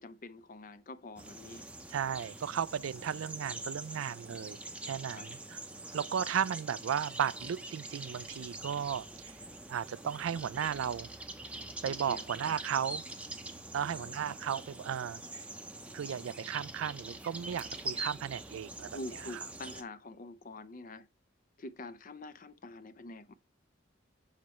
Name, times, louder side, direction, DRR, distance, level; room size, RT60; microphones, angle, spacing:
voice 1, 0.0-1.6 5.1-5.3 11.9-12.3 13.8-14.4 18.9-21.1 21.6-23.3, left 2 dB, 40° left, 0.5 m, -46 dB
sound 1, 1.2-19.8, right 2 dB, 5° right, 0.7 m, -44 dB
voice 2, 1.9-4.6 4.8-5.6 5.9-9.3 9.7-11.1 11.8-13.0 13.7-15.4 15.9-19.0, right 8 dB, 85° right, 0.4 m, -35 dB
7.3 x 4.3 x 3.0 m
head